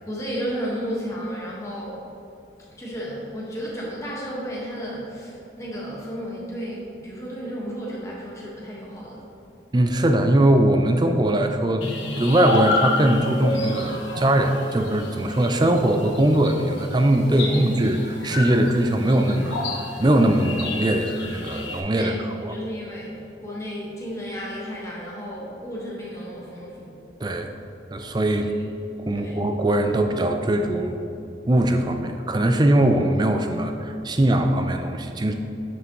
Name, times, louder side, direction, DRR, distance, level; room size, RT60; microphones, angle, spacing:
voice 1, 0.0-2.0 2.8-9.2 17.3-17.7 21.9-22.2 22.5-27.0 29.1-29.4, equal, 15° left, -5 dB, 1.4 m, -33 dB
voice 2, 9.7-11.9 12.2-22.5 27.2-27.5 27.9-28.5 29.1-31.0 31.5-35.3, right 1 dB, 25° right, 6 dB, 0.4 m, -21 dB
sound 1, 11.8-21.8, left 3 dB, 80° left, 1.1 m, -30 dB
9.2 x 6.0 x 3.0 m, 2.8 s
head